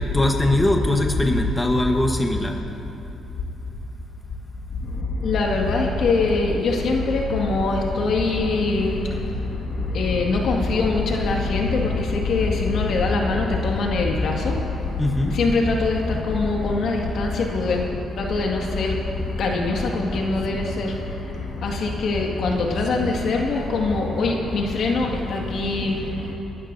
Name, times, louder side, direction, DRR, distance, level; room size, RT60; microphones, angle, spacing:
voice 1, 0.0-2.6 15.0-15.4, left 1 dB, 15° left, 2 dB, 1.2 m, -21 dB
voice 2, 4.7-26.4, left 3 dB, 65° left, 0 dB, 1.9 m, -23 dB
29.0 x 12.5 x 2.7 m, 3.0 s
cardioid pair, 90°, 0 cm